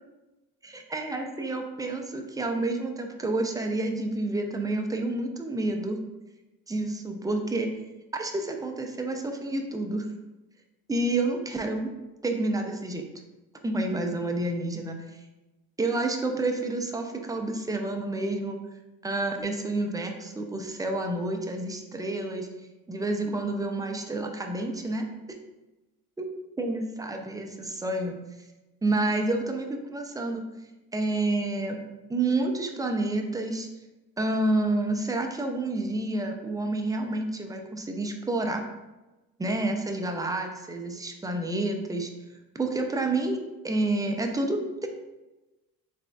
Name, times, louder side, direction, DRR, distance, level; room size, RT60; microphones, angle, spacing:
voice 1, 0.6-6.0 6.7-7.7 8.1-10.1 10.9-11.9 12.2-13.0 13.6-15.0 15.8-18.6 19.0-22.5 22.9-25.4 26.2-26.3 26.6-28.1 28.8-30.4 30.9-31.8 32.1-33.7 34.2-38.6 39.4-42.1 42.5-43.4 43.6-44.9, right 2 dB, 10° right, 3 dB, 0.4 m, -29 dB
3.9 x 3.3 x 2.2 m, 1.1 s
cardioid pair, 90°, 37 cm